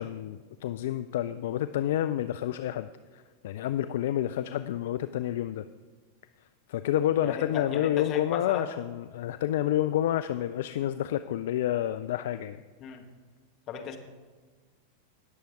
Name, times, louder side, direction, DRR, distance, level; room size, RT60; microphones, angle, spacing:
voice 1, 0.0-2.9 3.1-5.6 6.7-12.6, left 12 dB, 55° left, 11 dB, 0.3 m, -29 dB
voice 2, 7.2-8.7 12.8-13.0 13.7-14.0, left 7 dB, 35° left, 4 dB, 1.4 m, -35 dB
19.0 x 7.0 x 3.7 m, 1.5 s
figure-of-eight pair, 90°, 0 cm